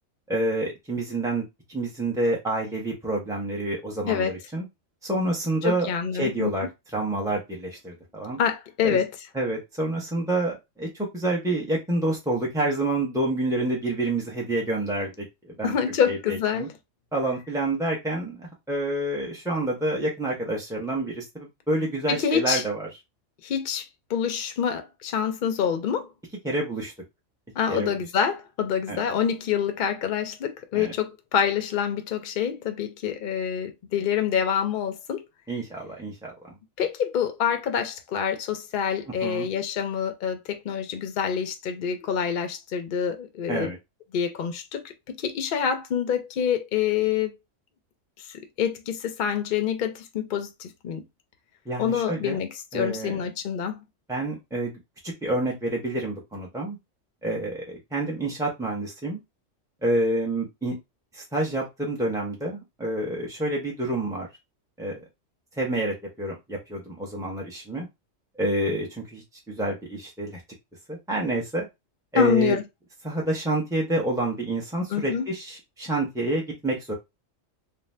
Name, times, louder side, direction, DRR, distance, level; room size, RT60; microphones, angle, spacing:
voice 1, 0.3-4.7 5.0-5.9 6.2-8.4 8.8-9.0 9.3-15.7 16.1-16.7 17.1-22.9 26.4-26.9 27.7-27.9 28.9-29.0 30.7-30.9 35.5-36.5 39.2-39.5 43.5-43.8 51.7-52.4 52.7-53.2 54.1-54.8 55.0-56.8 57.2-59.2 59.8-60.7 61.1-64.3 64.8-65.0 65.5-67.9 68.4-70.4 70.9-71.7 72.1-72.6 73.0-76.9, right 1 dB, 5° right, 0.4 m, -28 dB
voice 2, 5.6-6.5 8.4-9.1 15.6-16.7 22.1-22.6 23.4-26.1 27.6-35.2 36.8-43.7 44.1-47.3 48.2-51.0 51.8-53.8 72.1-72.6 74.9-75.2, left 8 dB, 60° left, 0.5 m, -26 dB
2.6 x 2.1 x 3.2 m
omnidirectional pair, 1.3 m